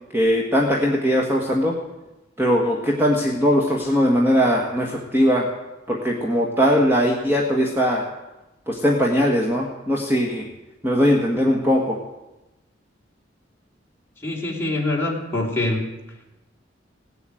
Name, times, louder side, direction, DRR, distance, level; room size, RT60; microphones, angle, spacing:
voice 1, 0.1-1.7 2.4-5.5 5.9-8.1 8.7-10.5 10.8-12.0, equal, 10° right, -1 dB, 1.6 m, -20 dB
voice 2, 14.2-15.8, left 2 dB, 15° left, -2 dB, 3.1 m, -24 dB
17.0 x 8.1 x 9.1 m, 1.0 s
head